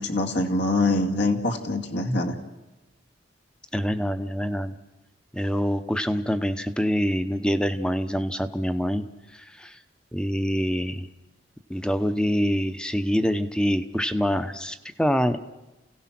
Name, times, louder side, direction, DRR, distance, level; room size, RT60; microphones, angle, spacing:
voice 1, 0.0-2.4, left 2 dB, 65° left, 2 dB, 2.2 m, -24 dB
voice 2, 3.7-4.8 5.3-9.0 9.3-9.8 10.1-11.1 11.7-15.4, equal, 5° left, 10 dB, 0.8 m, -25 dB
29.5 x 17.0 x 6.0 m, 1.0 s
head